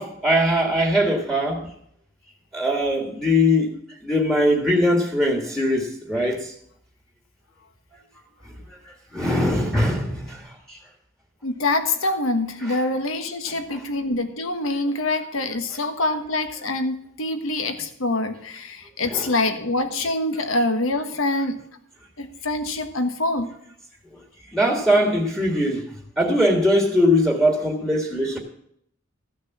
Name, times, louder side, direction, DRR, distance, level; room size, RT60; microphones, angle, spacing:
voice 1, 0.0-1.7 2.5-3.7 4.0-6.5 9.1-10.8 13.7-13.8 19.0-19.2 24.5-25.8 26.2-28.4, equal, ahead, 1.6 m, -21 dB
voice 2, 11.4-21.6 22.2-23.5, left 2 dB, 75° left, 1.4 m, -25 dB
14.0 x 6.4 x 7.3 m
head